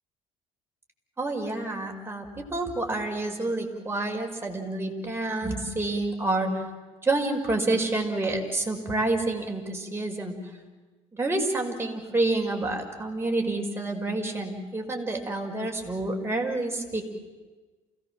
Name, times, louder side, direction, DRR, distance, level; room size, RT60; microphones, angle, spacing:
voice 1, 1.2-6.6 7.0-10.4 11.1-17.0, right 2 dB, 15° right, 1 dB, 5.5 m, -28 dB
28.5 x 18.0 x 7.6 m, 1.3 s
hypercardioid pair, 60°, 17 cm